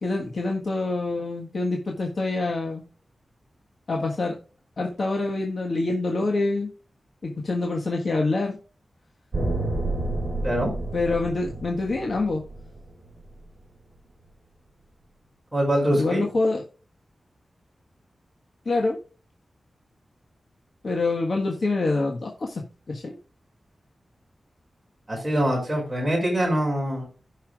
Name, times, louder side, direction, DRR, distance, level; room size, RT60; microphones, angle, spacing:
voice 1, 0.0-2.8 3.9-4.4 4.8-6.7 7.2-8.6 10.9-12.4 15.9-16.6 18.6-19.0 20.8-23.2, left 2 dB, 55° left, 1 dB, 1.4 m, -26 dB
sound 1, 9.3-13.5, right 2 dB, 45° right, 5.4 m, -30 dB
voice 2, 15.5-16.2 25.1-27.0, equal, 15° right, -2 dB, 5.5 m, -24 dB
16.0 x 5.7 x 2.4 m, 0.36 s
wide cardioid pair, 140°, 0 cm